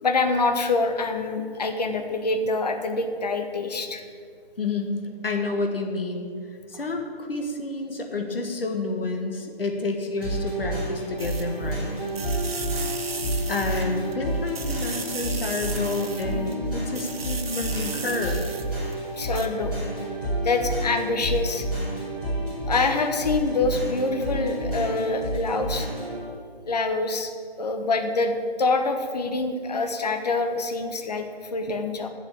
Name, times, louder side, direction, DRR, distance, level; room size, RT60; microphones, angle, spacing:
voice 1, 0.0-4.0 19.2-19.8 20.4-21.7 22.7-25.9 26.7-27.3 27.6-32.1, left 3 dB, 40° left, 6 dB, 0.9 m, -25 dB
voice 2, 4.6-12.0 12.7-13.0 13.5-18.4, left 3 dB, 65° left, 4 dB, 1.6 m, -29 dB
sound 1, 10.2-26.2, right 1 dB, 5° right, 3.5 m, -30 dB
sound 2, 11.2-11.7 12.1-14.2 14.5-16.5 16.9-18.9 19.3-19.5, right 4 dB, 70° right, 1.1 m, -36 dB
7.7 x 7.6 x 8.6 m, 2.1 s
figure-of-eight pair, 160°, 31 cm